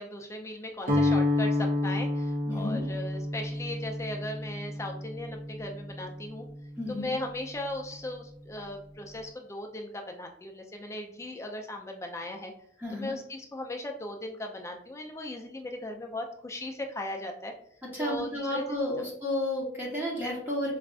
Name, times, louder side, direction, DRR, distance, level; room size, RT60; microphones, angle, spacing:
voice 1, 0.0-6.5 6.9-12.5 12.9-17.5 18.0-18.6, left 1 dB, 15° left, 3 dB, 0.3 m, -38 dB
Guitar, 0.8-6.9, left 2 dB, 45° right, 0.6 m, -30 dB
voice 2, 2.4-2.8 6.8-7.1 12.8-13.1 17.8-20.8, left 1 dB, 10° right, -4 dB, 0.9 m, -32 dB
4.8 x 2.3 x 2.3 m, 0.67 s
head